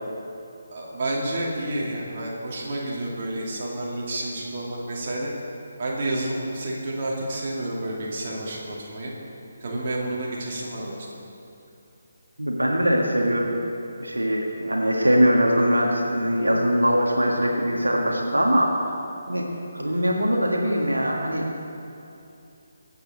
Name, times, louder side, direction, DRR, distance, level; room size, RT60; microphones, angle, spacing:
voice 1, 0.7-5.3 5.8-9.1 9.6-11.0, right 1 dB, 35° right, -4 dB, 2.4 m, -30 dB
voice 2, 12.4-13.6 14.0-18.9 19.3-19.5 19.7-21.5, equal, 75° right, -1 dB, 1.7 m, -22 dB
23.5 x 8.0 x 4.1 m, 2.7 s
figure-of-eight pair, 145°, 0 cm